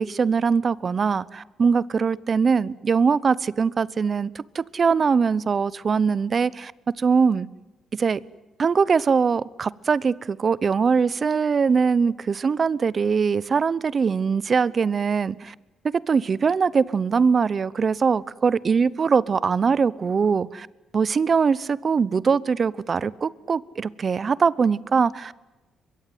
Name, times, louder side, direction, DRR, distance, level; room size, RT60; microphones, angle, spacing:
voice 1, 0.0-6.7 7.0-7.5 7.9-8.2 8.6-15.5 15.8-20.7 20.9-25.3, right 5 dB, 40° right, 20 dB, 0.8 m, -22 dB
22.5 x 22.5 x 9.5 m, 1.1 s
cardioid pair, 90°, 0 cm